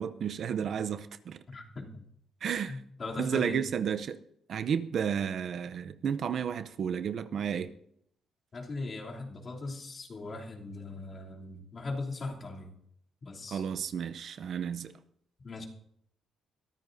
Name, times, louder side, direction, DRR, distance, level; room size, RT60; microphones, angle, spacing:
voice 1, 0.0-1.4 2.4-2.7 3.2-4.2 4.5-7.7 13.5-14.9, right 8 dB, 60° right, 0.7 m, -32 dB
voice 2, 1.5-2.0 2.7-3.6 8.5-12.7 13.2-13.6 15.4-15.7, left 3 dB, 40° left, 3.1 m, -39 dB
22.5 x 13.5 x 2.7 m
cardioid pair, 90°, 0 cm